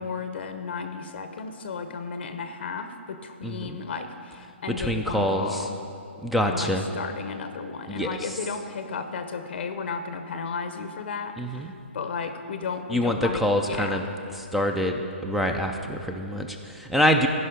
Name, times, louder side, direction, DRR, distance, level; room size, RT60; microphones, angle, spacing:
voice 1, 0.0-5.8 6.4-14.0, left 5 dB, 60° left, 8 dB, 0.7 m, -34 dB
voice 2, 3.4-3.8 4.8-5.7 6.2-6.8 7.9-8.3 11.4-11.7 12.9-14.0 14.3-17.3, equal, ahead, 4 dB, 0.4 m, -26 dB
15.0 x 5.5 x 5.1 m, 2.6 s
hypercardioid pair, 155°, 7 cm